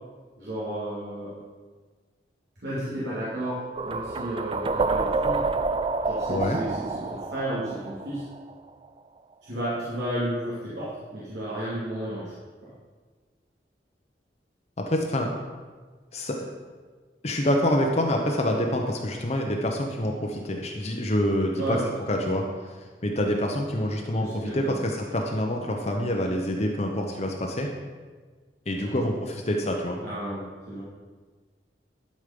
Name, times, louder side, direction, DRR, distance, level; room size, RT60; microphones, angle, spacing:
voice 1, 0.4-1.3 2.6-5.4 6.0-8.2 9.4-12.3 12.6-12.7 21.5-21.9 22.1-22.2 24.1-24.8 28.8-29.0 30.0-30.8, right 1 dB, 85° right, -10 dB, 2.7 m, -32 dB
sound 1, 3.8-8.7, right 3 dB, 30° right, 0.4 m, -28 dB
voice 2, 14.8-15.3 16.1-16.5 17.2-21.8 22.1-27.7 28.7-30.0, left 1 dB, 40° left, 1 dB, 0.8 m, -26 dB
11.5 x 5.3 x 5.3 m, 1.4 s
head